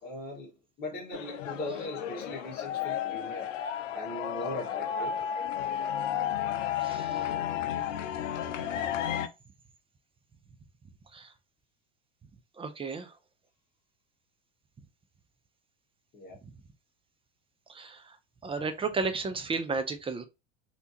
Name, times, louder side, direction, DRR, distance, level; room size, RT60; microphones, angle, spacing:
voice 1, 0.0-0.5 0.8-3.5 3.9-5.2 16.1-16.4, left 1 dB, 25° left, 1.6 m, -39 dB
sound 1, 1.1-9.3, left 9 dB, 90° left, 0.6 m, -33 dB
voice 2, 6.8-7.3 11.1-11.3 12.6-13.1 17.7-18.2 18.4-20.3, right 4 dB, 15° right, 0.5 m, -33 dB
3.3 x 2.9 x 2.8 m
hypercardioid pair, 100°, 37 cm